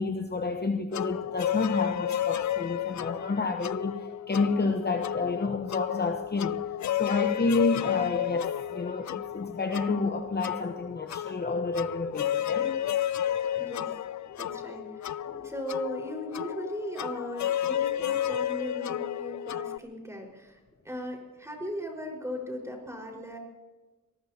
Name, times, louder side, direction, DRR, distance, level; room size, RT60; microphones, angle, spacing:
voice 1, 0.0-6.6 7.0-12.8 15.3-15.5, left 3 dB, 30° left, 5 dB, 1.0 m, -29 dB
sound 1, 0.9-19.8, left 11 dB, 55° left, 0.5 m, -32 dB
voice 2, 13.6-14.0 14.4-23.4, equal, 10° right, 1 dB, 4.8 m, -38 dB
25.5 x 19.5 x 2.9 m, 1.3 s
cardioid pair, 100°, 33 cm